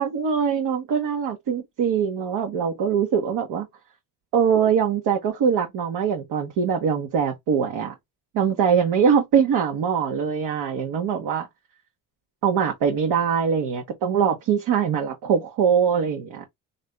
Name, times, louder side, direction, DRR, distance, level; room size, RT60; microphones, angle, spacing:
voice 1, 0.0-3.7 4.3-7.9 8.3-11.5 12.4-16.5, right 7 dB, 65° right, 1.0 m, -22 dB
3.2 x 2.7 x 3.1 m
supercardioid pair, 75°, 43 cm